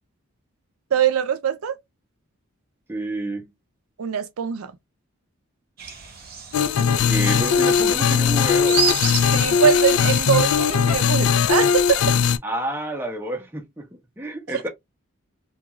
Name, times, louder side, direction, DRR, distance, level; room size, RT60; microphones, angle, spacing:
voice 1, 0.9-1.8 4.0-4.7 9.3-12.0 14.5-14.6, right 8 dB, 85° right, 0.4 m, -22 dB
voice 2, 2.9-3.5 7.1-8.8 12.4-14.7, right 1 dB, 10° right, 0.6 m, -29 dB
sound 1, 5.8-10.8, right 6 dB, 45° right, 0.8 m, -31 dB
sound 2, 6.5-12.4, left 6 dB, 80° left, 0.3 m, -19 dB
2.4 x 2.3 x 2.9 m
head